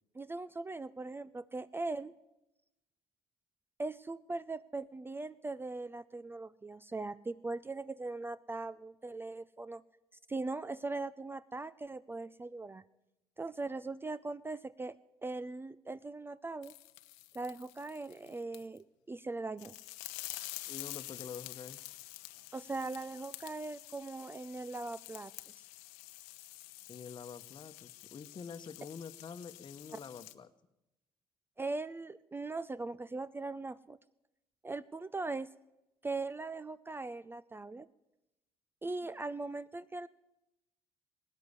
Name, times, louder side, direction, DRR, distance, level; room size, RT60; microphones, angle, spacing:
voice 1, 0.1-2.1 3.8-9.8 10.3-12.8 13.4-15.0 15.2-16.7 17.3-19.7 22.5-25.3 31.6-34.0 34.6-35.5 36.0-37.9 38.8-40.1, right 3 dB, 15° right, 17 dB, 0.5 m, -40 dB
sound 1, 16.6-18.8 19.6-30.3, left 18 dB, 80° left, 0.8 m, -48 dB
voice 2, 20.7-21.8 26.9-30.5 38.8-39.1, left 6 dB, 35° left, 12 dB, 1.1 m, -47 dB
18.0 x 9.5 x 8.3 m, 0.96 s
hypercardioid pair, 60°, 13 cm